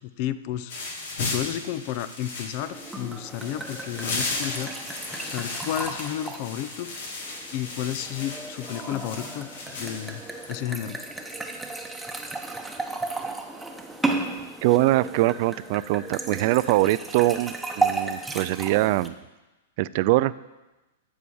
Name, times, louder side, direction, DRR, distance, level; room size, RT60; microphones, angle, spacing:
voice 1, 0.0-6.9 7.5-10.2 10.5-11.0, left 12 dB, 50° left, 14 dB, 0.7 m, -32 dB
sound 1, 0.7-10.6, left 3 dB, 70° left, 2.4 m, -35 dB
sound 2, 2.6-19.1, right 3 dB, 5° right, 1.1 m, -34 dB
voice 2, 14.6-19.1 19.8-20.3, right 17 dB, 50° right, 17 dB, 0.4 m, -23 dB
14.0 x 4.8 x 7.0 m, 1.1 s
hypercardioid pair, 120°, 0 cm